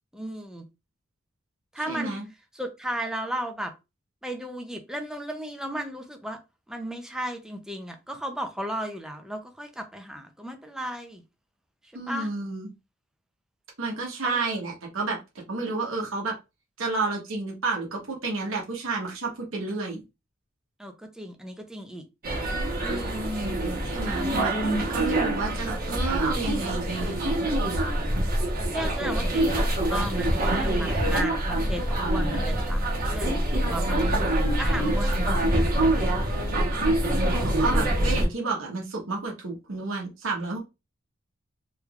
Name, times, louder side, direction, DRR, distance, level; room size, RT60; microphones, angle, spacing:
voice 1, 0.1-0.6 1.7-2.2 2.5-3.7 4.2-6.4 6.7-11.2 12.1-12.3 14.2-14.5 20.8-22.0 22.8-23.5 28.2-28.3 28.7-34.0 34.6-35.7 36.4-36.9, equal, 5° right, 0.5 m, -35 dB
voice 2, 1.9-2.3 11.9-12.7 13.8-15.2 15.5-16.3 16.8-20.0 23.1-24.5 24.9-27.4 36.8-40.6, right 3 dB, 75° right, 1.1 m, -31 dB
sound 1, 22.2-38.3, right 1 dB, 45° right, 1.0 m, -25 dB
3.3 x 3.1 x 2.4 m
head